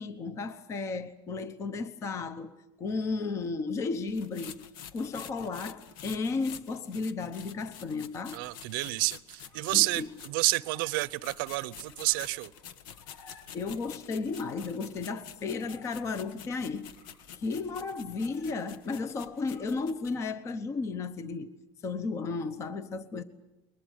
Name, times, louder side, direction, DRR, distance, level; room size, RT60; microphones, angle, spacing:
voice 1, 0.0-8.5 9.7-10.1 13.5-16.9 17.3-21.6 21.8-23.2, left 4 dB, 25° left, 1.0 m, -34 dB
sound 1, 4.1-10.5 10.9-20.1, left 9 dB, 70° left, 1.3 m, -49 dB
voice 2, 8.3-12.5, right 21 dB, 75° right, 0.8 m, -29 dB
sound 2, 9.1-20.2, left 4 dB, 55° left, 4.7 m, -59 dB
22.0 x 20.0 x 9.3 m
cardioid pair, 165°, 11 cm